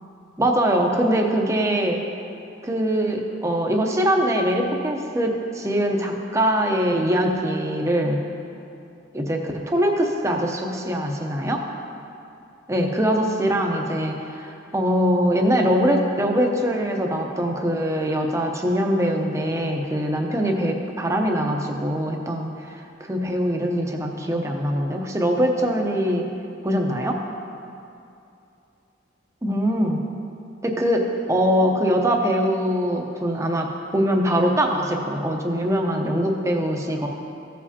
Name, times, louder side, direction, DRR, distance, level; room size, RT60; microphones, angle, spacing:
voice 1, 0.4-2.0 2.6-8.2 9.1-11.6 12.7-22.5 23.0-26.3 26.6-27.2 29.4-30.0 30.6-37.1, equal, 15° right, 2 dB, 0.7 m, -22 dB
15.0 x 7.3 x 2.8 m, 2.7 s
head